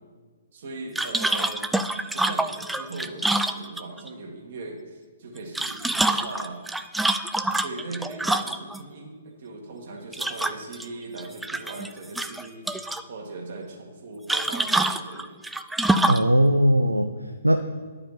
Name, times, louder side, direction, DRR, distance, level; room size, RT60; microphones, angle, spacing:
voice 1, 0.5-1.7 2.1-6.8 7.3-15.3, right 3 dB, 50° right, 2 dB, 1.6 m, -39 dB
sound 1, 1.0-4.1 5.4-8.8 10.1-10.9 11.2-11.9 12.2-13.0 14.3-16.3, right 2 dB, 5° right, 0.3 m, -26 dB
voice 2, 16.1-17.6, equal, 85° right, 7 dB, 0.5 m, -20 dB
10.5 x 4.9 x 5.5 m, 1.5 s
figure-of-eight pair, 120°, 0 cm